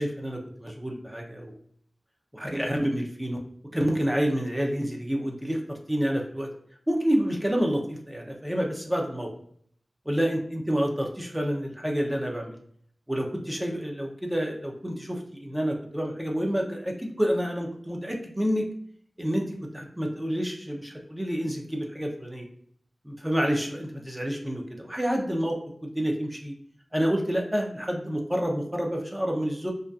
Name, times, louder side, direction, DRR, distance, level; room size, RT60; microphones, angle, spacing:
voice 1, 0.0-1.5 2.3-3.4 3.7-6.5 6.9-9.3 10.1-12.5 13.1-18.7 19.2-22.5 23.0-26.5 26.9-29.7, equal, 10° right, 1 dB, 0.4 m, -28 dB
2.5 x 2.2 x 2.2 m, 0.63 s
wide cardioid pair, 70°, 0 cm